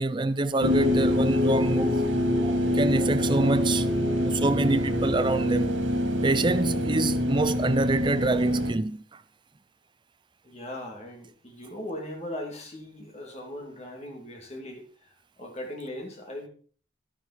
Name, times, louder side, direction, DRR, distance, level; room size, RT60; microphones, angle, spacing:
voice 1, 0.0-2.1 2.4-3.9 4.2-5.7 6.2-9.2, right 2 dB, 25° right, 0.5 m, -26 dB
sound 1, 0.6-8.7, left 1 dB, 90° right, 3.0 m, -25 dB
voice 2, 10.4-14.9 15.4-16.5, left 1 dB, 35° left, 2.7 m, -38 dB
11.5 x 9.9 x 4.3 m
head